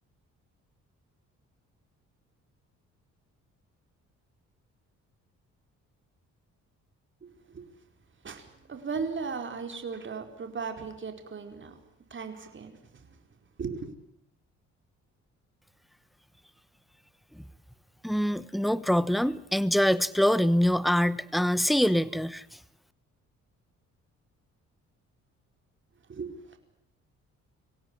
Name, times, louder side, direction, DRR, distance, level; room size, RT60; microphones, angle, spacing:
voice 1, 7.2-7.7 8.2-11.8 12.1-13.2 13.6-13.9 26.1-26.6, right 5 dB, 40° right, 6 dB, 4.7 m, -37 dB
voice 2, 18.0-22.4, equal, ahead, 17 dB, 1.1 m, -24 dB
26.0 x 17.5 x 9.9 m, 0.78 s
cardioid pair, 90°, 30 cm